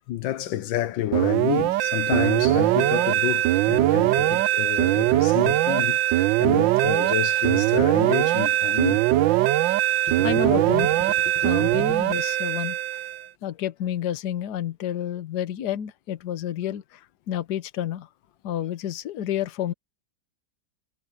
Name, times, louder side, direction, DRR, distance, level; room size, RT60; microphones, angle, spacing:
voice 1, 0.1-9.0 10.1-10.2 10.7-11.9, left 13 dB, 80° left, 1.5 m, -30 dB
sound 1, 1.1-13.3, right 15 dB, 80° right, 1.3 m, -21 dB
voice 2, 10.2-10.9 11.4-12.8 13.4-17.0 17.3-18.1 18.4-19.7, left 10 dB, 60° left, 1.4 m, -29 dB
omnidirectional pair, 2.1 m